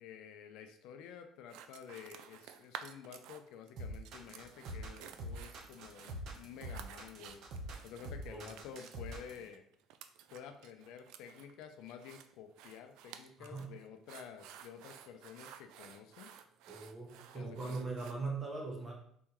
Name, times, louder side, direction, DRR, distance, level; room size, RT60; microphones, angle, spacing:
voice 1, 0.0-7.4 7.8-9.6 10.3-16.3 17.3-17.8, left 8 dB, 75° left, 6 dB, 0.5 m, -51 dB
sound 1, 1.5-3.7 4.0-18.1, right 9 dB, 75° right, 0.3 m, -53 dB
sound 2, 3.8-9.4, right 1 dB, 60° right, 0.9 m, -44 dB
voice 2, 13.4-13.7 16.7-18.9, right 3 dB, 25° right, -1 dB, 1.2 m, -40 dB
4.2 x 3.6 x 3.0 m, 0.65 s
cardioid pair, 125°, 0 cm